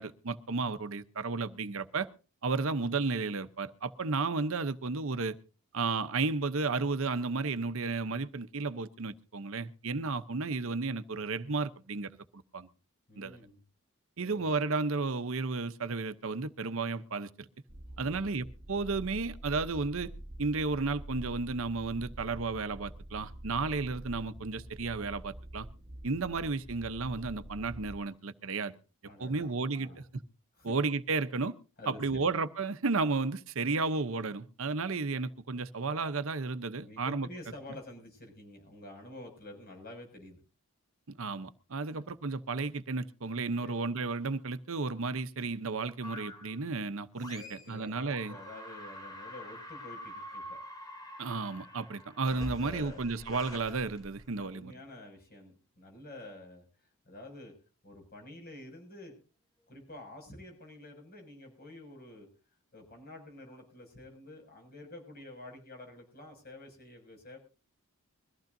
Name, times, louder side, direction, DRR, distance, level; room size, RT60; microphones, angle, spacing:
voice 1, 0.0-2.1 2.4-5.3 5.7-12.7 13.2-13.4 14.2-17.5 18.0-20.1 20.4-25.7 26.0-28.7 29.2-30.2 30.6-31.5 31.9-37.3 41.2-48.3 51.2-54.7, right 3 dB, 65° right, 0.8 m, -33 dB
voice 2, 13.1-13.6 14.2-14.5 17.9-18.4 29.0-30.0 30.5-30.7 31.8-32.2 36.7-40.4 41.8-42.0 43.6-43.8 47.3-50.6 52.3-53.1 54.4-56.7 57.0-57.5 57.8-59.2 59.7-62.3 62.7-67.4, left 1 dB, 40° left, 6.3 m, -49 dB
sound 1, 17.7-28.0, right 1 dB, 30° right, 1.3 m, -46 dB
sound 2, 46.0-46.6 47.2-47.8 48.1-54.6, equal, 15° left, 2.7 m, -46 dB
22.5 x 14.5 x 2.6 m
head